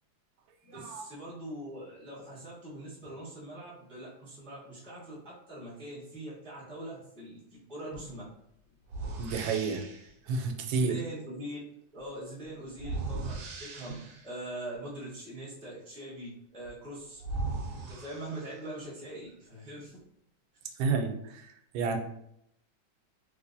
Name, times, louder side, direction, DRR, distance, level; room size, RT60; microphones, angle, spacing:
voice 1, 0.6-8.2 10.7-11.6 11.9-17.2 17.7-20.0, right 1 dB, 5° left, -8 dB, 0.5 m, -42 dB
sound 1, 7.9-8.1 8.9-10.1 12.8-14.4 16.6-16.7 17.2-18.8, right 3 dB, 70° right, 1.0 m, -38 dB
voice 2, 9.2-9.8 10.3-10.9 20.8-21.1 21.7-22.0, right 4 dB, 85° right, 4 dB, 1.3 m, -29 dB
3.2 x 3.1 x 2.6 m, 0.75 s
omnidirectional pair, 2.0 m